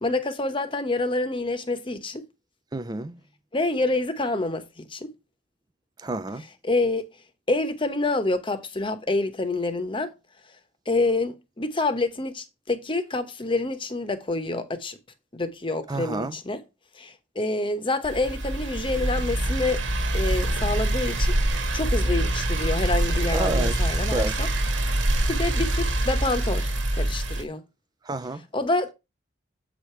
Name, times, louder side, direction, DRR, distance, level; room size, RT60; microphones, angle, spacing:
voice 1, 0.0-2.2 3.5-5.1 6.6-7.0 7.5-10.1 10.9-15.0 15.3-16.6 17.0-19.8 20.1-21.3 21.7-24.5 24.9-27.6 28.5-28.9, left 2 dB, 25° left, 1.0 m, -27 dB
voice 2, 2.7-3.2 6.0-6.4 15.9-16.4 23.3-24.4 28.0-28.5, right 2 dB, 20° right, 0.4 m, -30 dB
sound 1, 18.0-27.4, right 1 dB, 75° right, 1.6 m, -25 dB
7.7 x 5.0 x 4.4 m
head